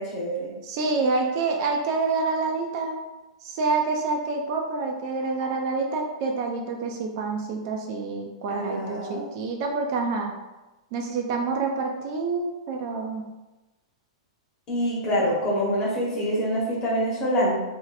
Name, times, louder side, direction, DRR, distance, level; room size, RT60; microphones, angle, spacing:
voice 1, 0.0-0.5 8.5-9.3 14.7-17.5, equal, 30° left, -5 dB, 1.1 m, -26 dB
voice 2, 0.6-3.0 3.4-10.3 10.9-13.2, right 4 dB, 45° right, 1 dB, 0.4 m, -27 dB
2.7 x 2.1 x 4.0 m, 1.1 s
hypercardioid pair, 145°, 3 cm